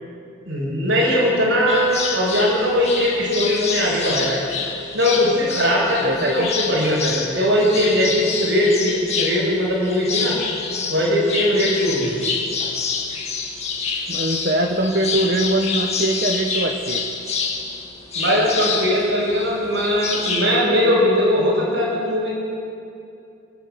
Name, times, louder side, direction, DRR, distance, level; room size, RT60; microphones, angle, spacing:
voice 1, 0.4-4.4 4.9-10.4 10.9-12.2 18.1-22.3, equal, 75° right, -8 dB, 6.0 m, -20 dB
sound 1, 1.7-20.6, left 5 dB, 30° left, 2.0 m, -27 dB
voice 2, 6.0-6.5 14.1-17.1, right 1 dB, 45° right, 3 dB, 1.2 m, -22 dB
29.5 x 11.0 x 8.1 m, 2.6 s
head